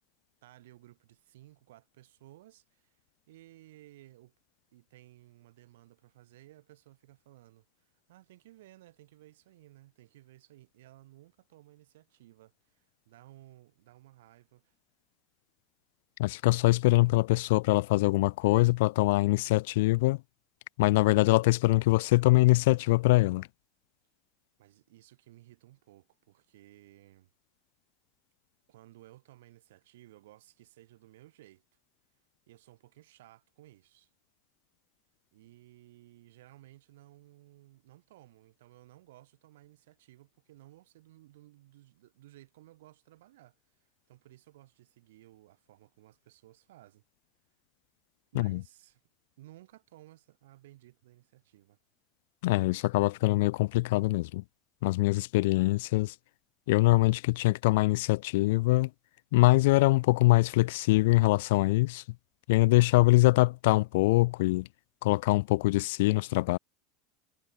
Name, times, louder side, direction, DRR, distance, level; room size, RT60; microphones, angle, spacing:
voice 1, 0.4-3.0 3.3-4.3 4.7-14.8 24.6-27.3 28.7-31.6 32.5-34.1 35.3-47.0 48.3-49.0 49.4-51.8, right 16 dB, 90° right, 7.0 m, -57 dB
voice 2, 16.2-20.2 20.8-23.5 48.3-48.6 52.4-54.4 54.8-56.1 56.7-58.9 59.3-62.0 62.5-64.7 65.0-66.6, left 20 dB, 80° left, 0.6 m, -23 dB
supercardioid pair, 120°, 0 cm